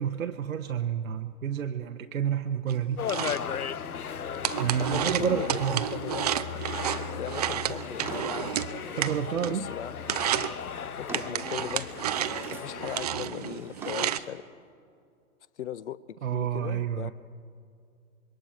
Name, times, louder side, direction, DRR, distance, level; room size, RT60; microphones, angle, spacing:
voice 1, 0.0-3.1 4.6-5.8 9.0-9.7 16.2-17.1, right 9 dB, 65° right, 0.9 m, -29 dB
sound 1, 2.7-9.7 10.0-10.6 11.1-14.2, right 11 dB, 30° right, 0.4 m, -32 dB
sound 2, 3.0-13.1, left 8 dB, 90° left, 0.5 m, -37 dB
voice 2, 4.8-6.4 7.2-8.6 9.5-10.0 11.0-11.9 12.5-14.4 15.6-16.0 16.3-17.1, left 10 dB, 55° left, 0.7 m, -38 dB
Drawer open or close, 7.6-9.5 10.3-11.5 11.9-12.8 13.1-14.3, right 2 dB, 5° right, 1.4 m, -46 dB
25.5 x 22.0 x 5.0 m
figure-of-eight pair, 110°, 43 cm